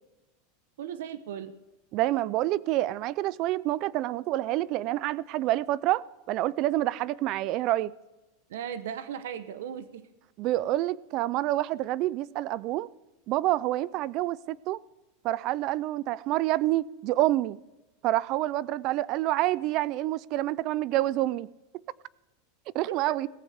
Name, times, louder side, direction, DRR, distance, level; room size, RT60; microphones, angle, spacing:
voice 1, 0.8-1.5 8.5-10.1 22.9-23.2, right 9 dB, 80° right, 13 dB, 0.9 m, -37 dB
voice 2, 1.9-7.9 10.4-12.9 13.3-14.8 15.2-17.6 18.0-21.5 22.7-23.3, right 15 dB, 35° right, 21 dB, 0.4 m, -27 dB
17.5 x 15.0 x 3.5 m, 1.0 s
supercardioid pair, 170°, 0 cm